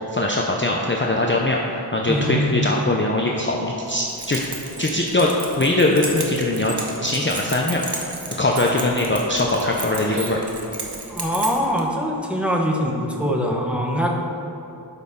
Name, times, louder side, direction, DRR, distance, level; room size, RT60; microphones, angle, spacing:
voice 1, 0.1-4.4 4.8-6.7 7.0-7.8 8.4-10.4, left 2 dB, 25° left, -1 dB, 0.7 m, -21 dB
voice 2, 2.1-2.6 11.1-14.1, equal, 5° right, -1 dB, 1.1 m, -23 dB
Keys jangling, 3.9-11.8, right 3 dB, 65° right, 1.1 m, -34 dB
12.0 x 5.3 x 3.7 m, 2.8 s
wide cardioid pair, 40°, 43 cm